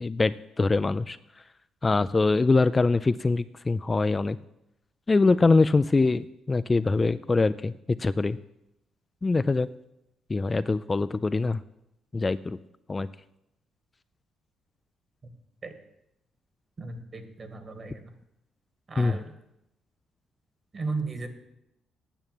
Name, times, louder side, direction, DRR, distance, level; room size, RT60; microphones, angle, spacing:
voice 1, 0.0-1.2 1.8-4.4 5.1-7.7 8.0-8.4 9.2-9.7 10.3-11.6 12.1-12.6 12.9-13.1 19.0-19.2, left 3 dB, 25° left, 13 dB, 0.3 m, -23 dB
voice 2, 16.8-18.1 18.9-19.4 20.7-21.3, right 3 dB, 40° right, 7 dB, 1.8 m, -35 dB
9.1 x 7.2 x 9.0 m, 0.86 s
cardioid pair, 90°, 0 cm